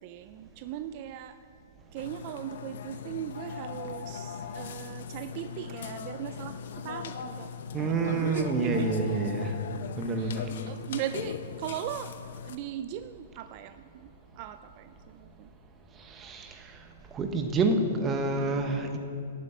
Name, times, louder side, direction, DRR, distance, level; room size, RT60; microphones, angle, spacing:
voice 1, 0.0-1.4 1.9-7.5 7.8-9.2 10.2-12.1 12.4-15.5, right 11 dB, 40° right, 11 dB, 0.3 m, -39 dB
Burping eructation, 2.0-12.6, left 7 dB, 70° left, 0.7 m, -39 dB
voice 2, 7.7-9.5 10.0-10.5 16.1-16.6 17.1-19.0, right 3 dB, 20° right, 5 dB, 1.1 m, -28 dB
8.2 x 8.1 x 9.0 m, 2.5 s
hypercardioid pair, 145°, 0 cm